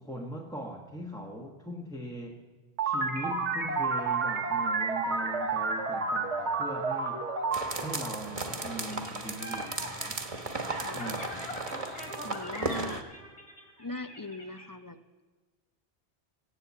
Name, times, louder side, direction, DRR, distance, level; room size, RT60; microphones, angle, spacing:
voice 1, 0.0-2.4 2.8-7.3 7.8-10.2 10.9-11.5, equal, 5° left, 0 dB, 1.0 m, -40 dB
sound 1, 2.8-9.0, right 4 dB, 85° right, 1.5 m, -31 dB
sound 2, 7.5-13.0, right 3 dB, 30° right, 1.2 m, -36 dB
sound 3, 8.8-14.6, equal, 75° left, 3.5 m, -42 dB
voice 2, 10.8-11.6 12.2-13.0 13.8-15.2, left 2 dB, 25° left, 9 dB, 0.4 m, -41 dB
16.5 x 9.8 x 8.3 m, 1.4 s
omnidirectional pair, 1.2 m